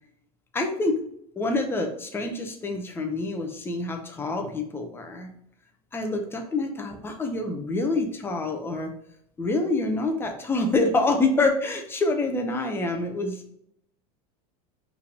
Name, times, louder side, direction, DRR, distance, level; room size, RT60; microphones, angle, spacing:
voice 1, 0.5-1.0 1.4-5.3 5.9-8.9 9.4-13.5, left 2 dB, 10° left, 3 dB, 0.7 m, -26 dB
4.5 x 3.4 x 3.3 m, 0.73 s
supercardioid pair, 140°, 19 cm